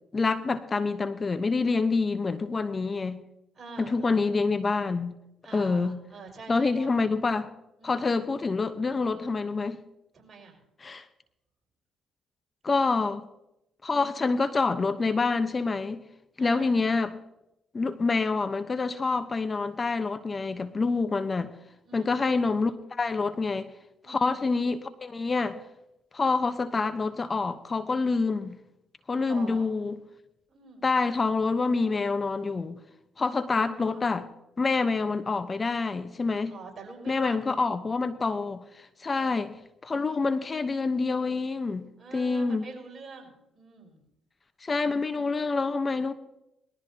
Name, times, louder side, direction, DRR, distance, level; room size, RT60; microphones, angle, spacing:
voice 1, 0.1-3.2 3.8-5.1 5.5-6.0 6.5-7.5 7.8-9.8 10.8-11.1 12.6-13.3 13.8-16.0 16.4-17.2 17.7-21.5 21.9-23.7 24.1-25.6 26.1-28.6 29.1-30.0 30.8-32.8 33.2-34.2 34.6-36.6 37.1-39.5 39.8-42.6 44.6-46.1, left 4 dB, 35° left, 11 dB, 1.0 m, -27 dB
voice 2, 3.5-4.3 5.4-6.9 7.8-8.1 10.1-10.6 13.9-14.2 16.4-16.9 21.8-22.3 24.0-24.4 29.3-29.7 30.5-30.9 33.5-34.2 36.5-37.5 39.0-39.5 42.0-44.0, right 4 dB, 40° right, 1 dB, 5.9 m, -46 dB
21.0 x 14.0 x 2.9 m, 0.86 s
supercardioid pair, 55°, 0 cm